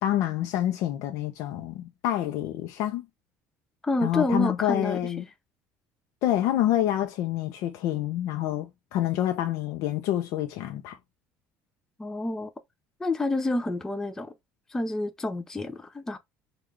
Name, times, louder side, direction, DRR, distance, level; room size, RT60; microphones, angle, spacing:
voice 1, 0.0-3.1 4.0-5.2 6.2-11.0, left 12 dB, 70° left, 0.5 m, -27 dB
voice 2, 3.8-5.0 12.0-12.5 13.0-14.3 14.7-16.2, left 2 dB, 10° left, 0.3 m, -28 dB
3.6 x 2.3 x 3.1 m
cardioid pair, 155°, 6 cm